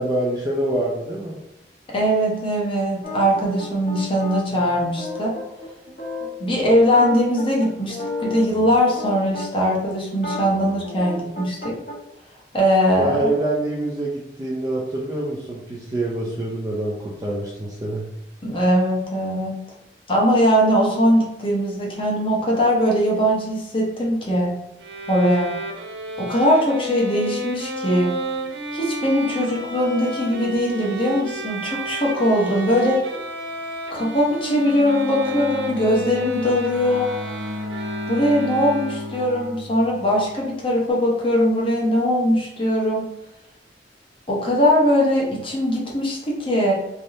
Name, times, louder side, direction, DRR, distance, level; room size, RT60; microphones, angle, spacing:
voice 1, 0.0-1.4 13.0-18.1, right 1 dB, 20° right, -4 dB, 0.4 m, -25 dB
voice 2, 1.9-5.3 6.4-11.8 12.5-13.3 18.4-19.5 20.1-24.6 25.1-25.5 26.2-28.2 28.7-33.0 33.9-37.1 38.1-43.1 44.3-46.7, equal, 30° left, -3 dB, 0.8 m, -20 dB
sound 1, 3.0-9.7 10.1-12.0, left 2 dB, 55° left, 1.2 m, -32 dB
Bowed string instrument, 24.8-39.3, equal, 85° right, 0.4 m, -31 dB
Bowed string instrument 2, 34.5-40.3, left 2 dB, 65° right, 1.0 m, -33 dB
3.3 x 2.6 x 2.7 m, 0.88 s
head